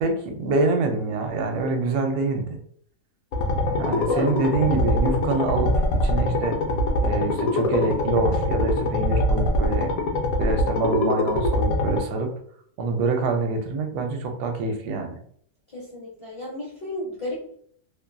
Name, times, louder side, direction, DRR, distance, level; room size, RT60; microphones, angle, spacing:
voice 1, 0.0-2.6 3.8-6.6 7.0-9.9 10.4-12.3 12.8-15.2, right 3 dB, 75° right, 5 dB, 1.1 m, -25 dB
sound 1, 3.3-12.0, left 1 dB, 70° left, 0.9 m, -23 dB
voice 2, 15.7-17.5, left 1 dB, 55° left, -6 dB, 0.4 m, -34 dB
2.8 x 2.4 x 2.2 m, 0.63 s
omnidirectional pair, 1.8 m